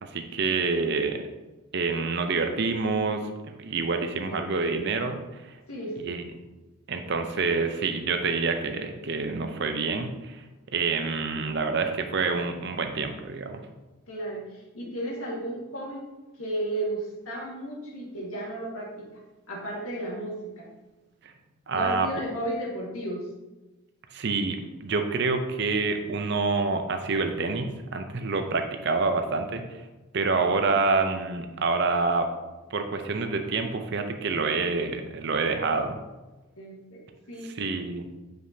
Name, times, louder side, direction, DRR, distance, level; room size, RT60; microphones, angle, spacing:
voice 1, 0.0-1.2 1.7-5.2 6.1-6.2 6.9-10.4 10.7-13.6 21.7-22.1 24.1-29.6 30.1-32.3 32.7-36.0 37.4-38.1, right 4 dB, 55° right, 6 dB, 0.6 m, -27 dB
voice 2, 5.7-6.3 14.1-16.0 16.4-19.1 19.5-20.7 21.7-23.2 36.6-37.0 37.3-37.5, right 1 dB, 80° left, -3 dB, 1.8 m, -34 dB
7.6 x 5.1 x 2.8 m, 1.1 s
head